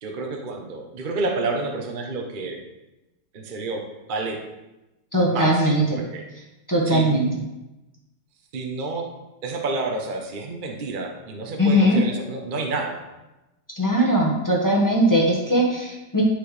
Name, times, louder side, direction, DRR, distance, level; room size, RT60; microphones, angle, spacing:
voice 1, 0.0-2.6 3.3-3.8 4.1-4.4 5.3-6.2 6.9-7.2 8.5-9.1 9.4-13.0, right 3 dB, 40° right, 2 dB, 0.7 m, -29 dB
voice 2, 5.1-6.0 6.7-7.3 11.6-12.0 13.8-16.2, equal, 10° left, -3 dB, 1.1 m, -20 dB
11.5 x 4.5 x 3.3 m, 0.99 s
omnidirectional pair, 2.1 m